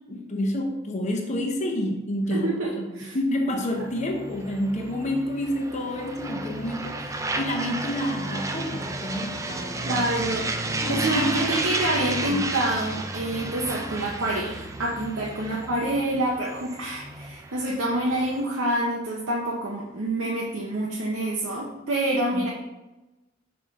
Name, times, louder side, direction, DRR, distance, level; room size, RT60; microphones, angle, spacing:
voice 1, 0.1-10.0 10.8-11.5 12.3-12.4 15.5-15.6 22.3-22.4, left 1 dB, 35° left, 1 dB, 0.8 m, -29 dB
voice 2, 2.3-3.2 9.8-10.5 10.9-22.5, right 1 dB, 80° right, -3 dB, 0.8 m, -27 dB
sound 1, 3.3-17.3, equal, 40° right, 0.9 m, -45 dB
sound 2, 3.6-18.4, right 2 dB, 15° right, 0.4 m, -33 dB
5.6 x 4.8 x 3.6 m, 1.0 s
head